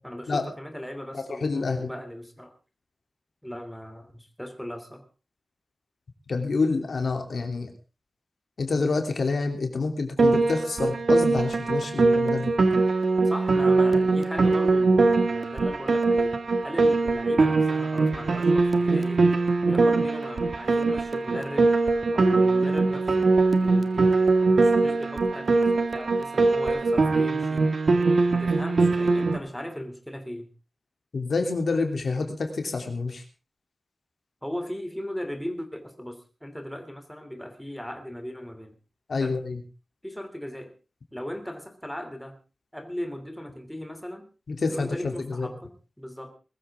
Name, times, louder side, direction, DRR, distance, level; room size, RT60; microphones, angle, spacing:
voice 1, 0.0-2.5 3.4-5.1 13.2-16.4 16.6-19.2 19.7-21.7 22.1-27.7 28.3-30.5 34.4-38.8 39.2-39.4 40.0-40.7 41.1-42.4 42.7-44.2 44.7-46.4, equal, 5° left, 6 dB, 3.0 m, -37 dB
voice 2, 1.1-1.9 6.3-7.7 8.6-12.5 31.1-33.2 39.1-39.6 44.5-45.5, left 4 dB, 75° left, 4 dB, 3.0 m, -27 dB
Piano, 10.2-29.4, right 3 dB, 70° right, 1.9 m, -22 dB
21.0 x 14.0 x 3.6 m, 0.33 s
wide cardioid pair, 95°, 0 cm